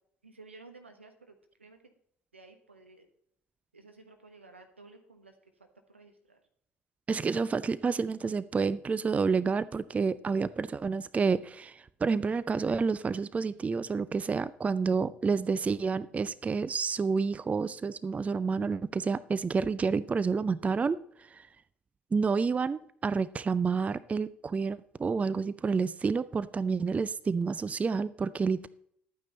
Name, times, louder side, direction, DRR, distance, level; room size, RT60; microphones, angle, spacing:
voice 1, 0.2-1.9 2.3-3.1 3.7-6.4, right 3 dB, 85° right, 5 dB, 1.3 m, -54 dB
voice 2, 7.1-21.5 22.1-28.7, right 5 dB, 20° right, 18 dB, 0.4 m, -29 dB
12.0 x 9.0 x 4.1 m, 0.68 s
figure-of-eight pair, 55°, 6 cm